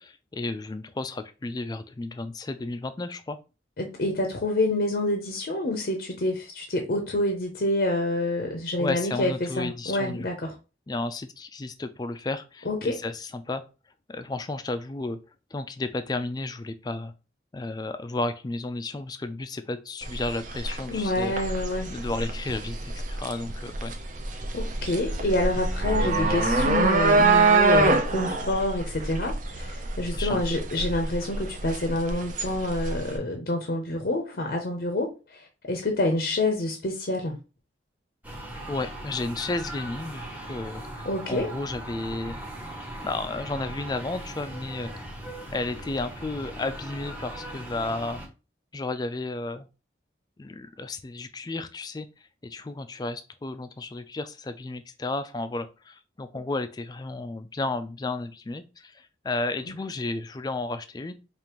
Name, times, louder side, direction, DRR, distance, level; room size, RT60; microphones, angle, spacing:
voice 1, 0.0-3.4 8.8-10.3 10.9-13.6 14.1-15.2 15.5-17.1 17.5-21.4 21.9-23.9 26.0-26.5 30.1-30.6 38.7-42.4 43.0-44.9 45.5-48.2 48.7-49.7 50.4-52.1 52.4-61.1, left 2 dB, 20° left, 10 dB, 0.3 m, -33 dB
voice 2, 3.8-10.5 12.7-13.0 20.9-21.9 24.5-37.4 41.0-41.5 59.7-59.8, left 1 dB, 55° left, 3 dB, 0.6 m, -27 dB
sound 1, 20.0-33.2, right 3 dB, 45° right, 0.5 m, -25 dB
sound 2, 38.2-48.3, right 1 dB, 10° right, 0.8 m, -39 dB
5.0 x 2.5 x 3.0 m, 0.31 s
head